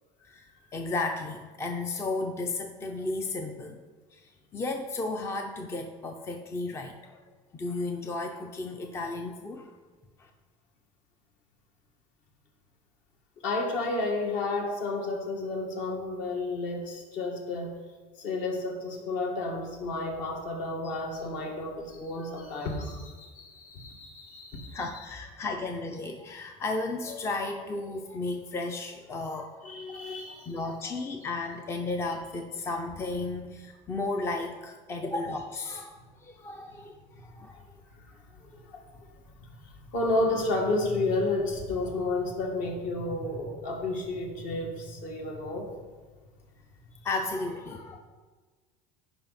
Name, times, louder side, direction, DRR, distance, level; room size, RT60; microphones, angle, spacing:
voice 1, 0.3-3.8 4.1-7.2 7.5-9.7 10.2-10.3 24.7-29.7 30.5-37.6 47.0-48.0, left 3 dB, 15° left, 5 dB, 0.5 m, -34 dB
voice 2, 13.4-17.7 18.2-25.0 29.6-30.7 39.9-45.7, left 2 dB, 55° left, 1 dB, 2.1 m, -31 dB
14.5 x 5.5 x 4.2 m, 1.4 s
cardioid pair, 155°, 16 cm